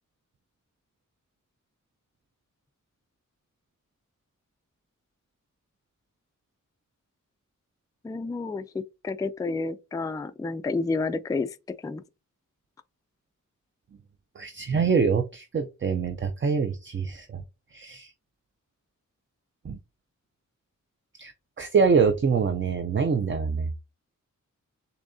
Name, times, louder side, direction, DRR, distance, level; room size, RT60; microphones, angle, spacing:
voice 1, 8.0-11.6 11.8-12.0, left 3 dB, 10° left, 0.3 m, -30 dB
voice 2, 14.4-17.4 17.7-18.1 19.6-19.8 21.2-21.3 21.6-23.7, right 5 dB, 40° right, 0.5 m, -25 dB
6.9 x 2.8 x 2.6 m
wide cardioid pair, 100°, 32 cm